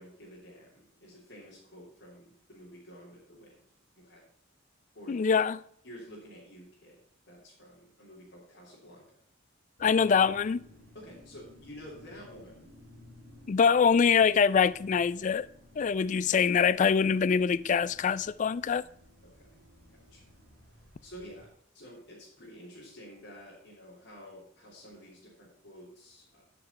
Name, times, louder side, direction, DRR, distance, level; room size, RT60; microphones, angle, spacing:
voice 1, 0.0-3.6 3.9-4.2 4.9-5.3 5.8-7.0 7.3-9.0 10.9-12.7 19.3-19.6 19.9-20.3 21.0-21.5 21.7-26.4, equal, 65° left, 3.1 m, -50 dB
voice 2, 5.1-5.6 9.8-10.6 13.5-15.5 15.8-18.8, left 6 dB, 40° left, 0.3 m, -24 dB
sound 1, 9.8-21.5, left 1 dB, 55° right, 5.1 m, -56 dB
11.5 x 5.9 x 5.5 m
head